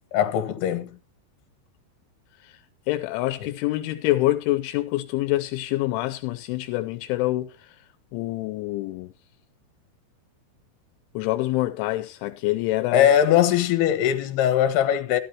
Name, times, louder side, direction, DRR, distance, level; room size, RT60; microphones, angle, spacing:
voice 1, 0.1-0.9 3.4-3.5 12.9-15.2, left 10 dB, 65° left, 3.2 m, -20 dB
voice 2, 2.9-7.8 8.1-9.1 11.1-13.1, left 17 dB, 85° left, 3.1 m, -26 dB
13.5 x 13.0 x 2.9 m
omnidirectional pair, 5.5 m